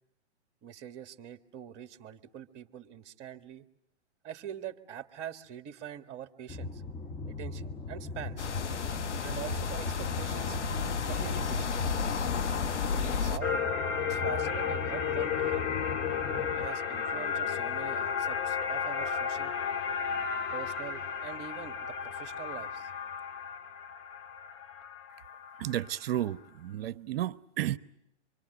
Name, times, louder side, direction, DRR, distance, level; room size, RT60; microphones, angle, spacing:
voice 1, 0.6-3.6 4.2-6.8 7.4-8.5 9.2-11.7 12.9-13.5 14.0-15.7 16.6-19.5 20.5-22.9, right 9 dB, 30° right, 1.8 m, -44 dB
sound 1, 6.5-16.7, left 3 dB, 15° left, 1.1 m, -39 dB
sound 2, 8.4-13.4, left 6 dB, 80° left, 1.4 m, -32 dB
sound 3, 13.4-26.0, left 7 dB, 35° left, 1.6 m, -33 dB
voice 2, 25.6-27.8, right 12 dB, 55° right, 0.9 m, -32 dB
25.5 x 25.0 x 8.0 m
hypercardioid pair, 130°, 35 cm